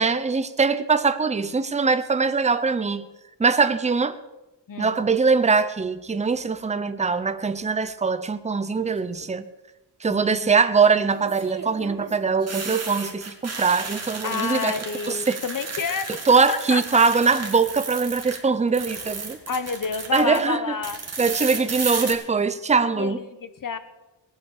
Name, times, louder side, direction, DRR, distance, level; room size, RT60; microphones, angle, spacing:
voice 1, 0.0-3.1 3.4-4.2 4.8-9.5 10.0-14.7 15.1-15.4 16.3-19.4 20.1-20.6 21.2-23.2, right 4 dB, 15° right, 0.7 m, -22 dB
sound 1, 8.8-9.2 11.1-18.4 18.7-20.4 20.8-22.1, right 4 dB, 35° right, 2.5 m, -34 dB
voice 2, 10.1-10.5 14.2-17.1 19.5-21.0 21.5-21.7 22.9-23.8, left 6 dB, 50° left, 1.2 m, -30 dB
19.5 x 9.0 x 6.6 m
wide cardioid pair, 150°, 41 cm